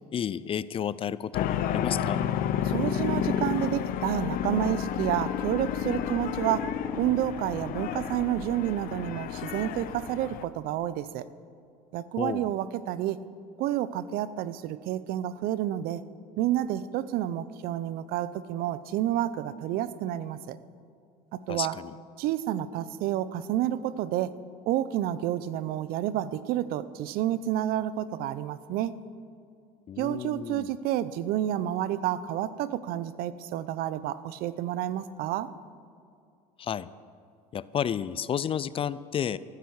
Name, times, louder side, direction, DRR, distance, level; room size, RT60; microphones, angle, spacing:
voice 1, 0.1-2.2 12.2-12.5 21.5-21.9 29.9-30.7 36.6-36.9 37.5-39.4, left 8 dB, 35° left, 18 dB, 0.4 m, -31 dB
sound 1, 1.3-10.4, left 9 dB, 60° left, 0.8 m, -31 dB
voice 2, 2.6-11.2 11.9-13.2 13.6-16.0 16.4-20.6 21.3-21.8 22.2-24.3 24.7-28.9 30.0-35.5, right 12 dB, 65° right, 16 dB, 0.6 m, -30 dB
15.0 x 13.5 x 4.8 m, 2.4 s
supercardioid pair, 95°, 17 cm